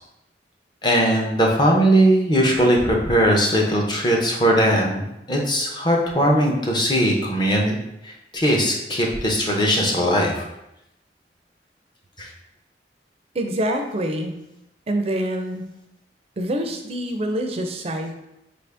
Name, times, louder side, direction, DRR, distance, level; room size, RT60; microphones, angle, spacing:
voice 1, 0.8-5.0 5.3-7.8 8.0-10.5 12.2-12.3, equal, 25° left, -1 dB, 0.6 m, -19 dB
voice 2, 13.3-14.3 14.9-15.6 16.4-18.1, right 1 dB, 35° right, 5 dB, 0.4 m, -25 dB
4.8 x 2.6 x 3.4 m, 0.86 s
head